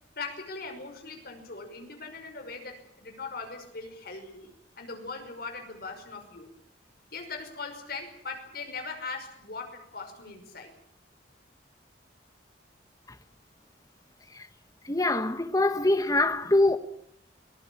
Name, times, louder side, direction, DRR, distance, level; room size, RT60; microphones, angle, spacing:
voice 1, 0.2-4.5 4.8-6.5 7.1-10.7, left 4 dB, 55° left, 5.7 m, -40 dB
voice 2, 14.9-16.8, left 2 dB, 20° left, 1.3 m, -23 dB
23.0 x 19.0 x 8.7 m
head